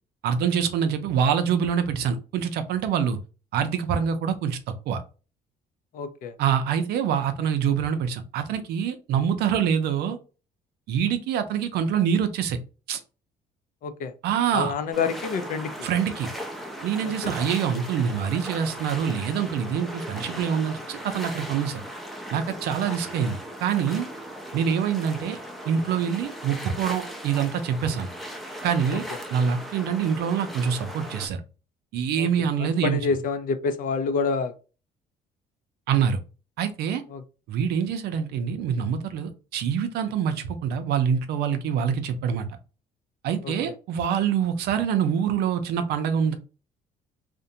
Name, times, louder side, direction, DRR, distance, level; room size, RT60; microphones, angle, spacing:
voice 1, 0.2-3.2 3.5-4.6 4.9-5.0 6.4-10.2 10.9-12.6 12.9-13.0 14.2-14.8 15.8-16.3 16.8-21.8 22.3-24.1 24.5-25.4 25.7-28.1 28.6-29.0 29.3-31.4 31.9-33.0 35.9-36.2 36.6-37.0 37.5-42.5 43.2-46.3, right 7 dB, 75° right, 9 dB, 0.5 m, -25 dB
voice 2, 5.9-6.3 13.8-14.1 14.5-15.7 17.0-17.3 32.2-32.3 32.6-34.5 37.1-37.2 43.4-43.5, left 5 dB, 55° left, 10 dB, 0.5 m, -27 dB
sound 1, 14.9-31.3, equal, ahead, 0.5 m, -38 dB
2.5 x 2.1 x 2.7 m, 0.34 s
cardioid pair, 110°, 17 cm